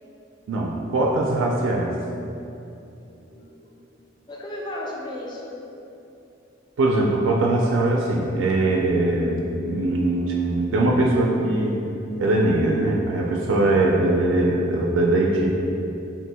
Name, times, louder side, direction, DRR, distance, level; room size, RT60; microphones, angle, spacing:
voice 1, 0.5-1.9 6.8-11.8 12.2-15.5, right 2 dB, 85° right, -1 dB, 0.3 m, -21 dB
voice 2, 2.7-3.9 4.3-5.6, left 1 dB, 25° left, -2 dB, 0.4 m, -36 dB
2.7 x 2.4 x 4.1 m, 2.8 s
head